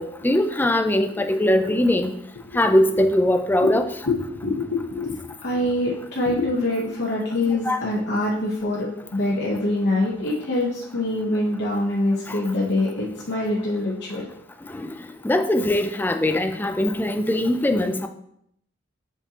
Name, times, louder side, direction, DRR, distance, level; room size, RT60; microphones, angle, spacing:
voice 1, 0.0-2.1 2.5-3.9 7.5-7.8 12.3-12.4 14.7-14.9 15.2-18.1, left 1 dB, 10° left, 7 dB, 0.4 m, -21 dB
voice 2, 2.4-3.0 3.6-3.8 4.0-5.2 5.4-14.2, left 2 dB, 60° left, -4 dB, 1.0 m, -25 dB
7.4 x 5.3 x 2.9 m, 0.74 s
head